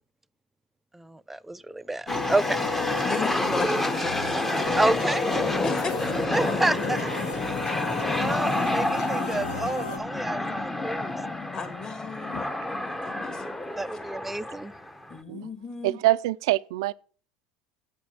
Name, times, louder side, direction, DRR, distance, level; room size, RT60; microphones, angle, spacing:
voice 1, 0.9-2.6 4.7-5.3 6.3-7.1 8.2-11.2 13.8-14.7, right 2 dB, 10° right, 0.4 m, -29 dB
sound 1, 2.1-10.0, left 5 dB, 70° left, 2.2 m, -33 dB
sound 2, 2.1-15.2, left 1 dB, 10° left, 0.9 m, -29 dB
voice 2, 3.0-4.9 5.6-6.2 11.5-13.4 15.1-16.0, left 4 dB, 35° left, 2.6 m, -35 dB
voice 3, 15.8-16.9, right 17 dB, 75° right, 0.4 m, -24 dB
8.0 x 6.1 x 7.1 m
hypercardioid pair, 85°, 3 cm